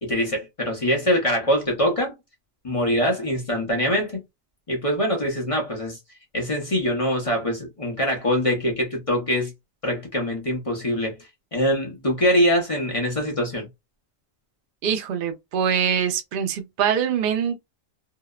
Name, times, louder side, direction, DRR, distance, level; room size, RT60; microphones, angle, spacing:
voice 1, 0.0-2.1 2.6-4.2 4.7-6.0 6.3-9.5 9.8-11.2 11.5-13.7, equal, 30° left, 0.7 m, -23 dB
voice 2, 14.8-17.6, right 8 dB, 60° right, 0.6 m, -24 dB
2.8 x 2.0 x 2.3 m
omnidirectional pair, 1.4 m